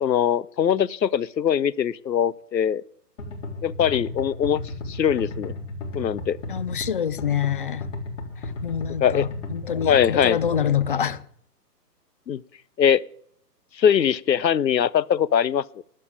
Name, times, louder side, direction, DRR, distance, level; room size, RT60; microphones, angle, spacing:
voice 1, 0.0-2.8 3.6-4.6 4.9-5.5 5.9-6.4 9.0-9.3 9.8-10.4 12.3-12.4 12.8-13.0 13.8-15.8, left 8 dB, 85° left, 0.7 m, -21 dB
sound 1, 3.2-11.1, left 2 dB, 50° left, 3.9 m, -34 dB
voice 2, 6.5-7.9 8.6-11.2, left 9 dB, 35° left, 0.5 m, -26 dB
12.0 x 7.7 x 8.6 m
figure-of-eight pair, 135°, 49 cm